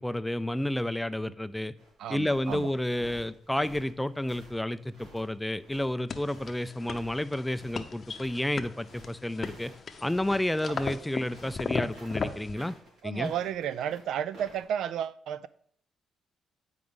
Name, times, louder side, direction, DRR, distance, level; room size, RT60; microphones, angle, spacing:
voice 1, 0.0-1.7 2.1-9.7 10.0-12.8 13.0-13.3, left 1 dB, 5° left, 0.4 m, -31 dB
sound 1, 1.5-14.7, right 2 dB, 60° right, 3.5 m, -53 dB
voice 2, 2.0-2.7 10.7-10.8 13.0-15.5, right 9 dB, 80° right, 0.4 m, -33 dB
sound 2, 6.1-12.5, left 5 dB, 40° left, 0.7 m, -37 dB
9.2 x 4.9 x 3.7 m
cardioid pair, 90°, 0 cm